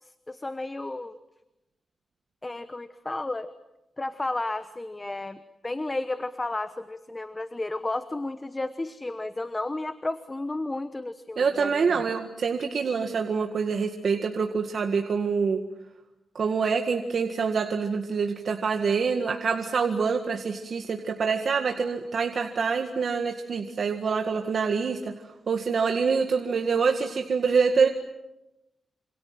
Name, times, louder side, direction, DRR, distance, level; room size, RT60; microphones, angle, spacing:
voice 1, 0.0-1.2 2.4-3.5 4.0-12.0, left 2 dB, 20° left, 11 dB, 1.0 m, -33 dB
voice 2, 11.4-15.6 16.4-25.1 25.5-27.9, right 5 dB, 60° right, 4 dB, 1.8 m, -26 dB
27.0 x 27.0 x 7.7 m, 0.94 s
wide cardioid pair, 135°, 0 cm